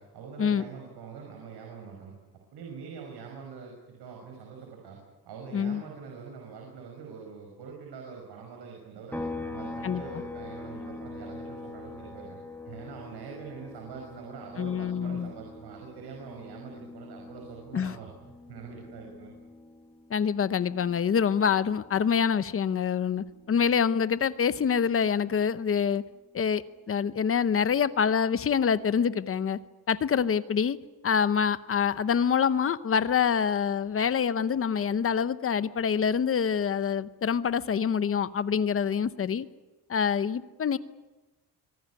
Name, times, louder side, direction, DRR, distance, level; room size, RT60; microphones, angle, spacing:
voice 1, 0.0-2.2 2.5-5.0 5.3-12.4 12.6-19.3, right 6 dB, 90° right, 1 dB, 5.7 m, -44 dB
sound 1, 9.1-22.7 23.0-25.2, left 2 dB, 5° left, 1.6 m, -44 dB
voice 2, 14.6-15.3 17.7-18.0 20.1-26.0 26.3-29.6 29.9-30.8 31.0-39.5 39.9-40.8, left 7 dB, 35° left, 14 dB, 0.8 m, -26 dB
25.0 x 18.0 x 9.6 m, 1.2 s
cardioid pair, 175°, 39 cm